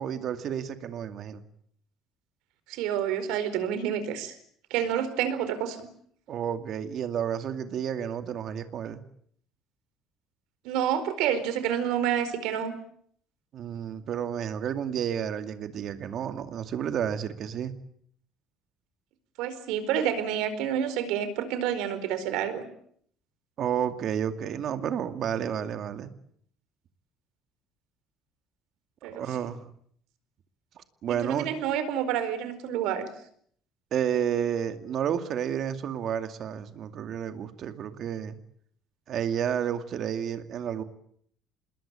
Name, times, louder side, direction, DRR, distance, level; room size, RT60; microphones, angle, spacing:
voice 1, 0.0-1.4 6.3-9.0 13.5-17.7 23.6-26.1 29.1-29.6 30.8-31.5 33.9-38.4 39.1-40.8, right 9 dB, 45° right, 9 dB, 2.3 m, -31 dB
voice 2, 2.7-4.4 4.7-5.9 10.6-12.7 19.4-22.7 29.0-29.5 31.1-33.1, right 9 dB, 85° right, 12 dB, 4.5 m, -29 dB
27.0 x 21.0 x 8.9 m, 0.66 s
cardioid pair, 150°, 0 cm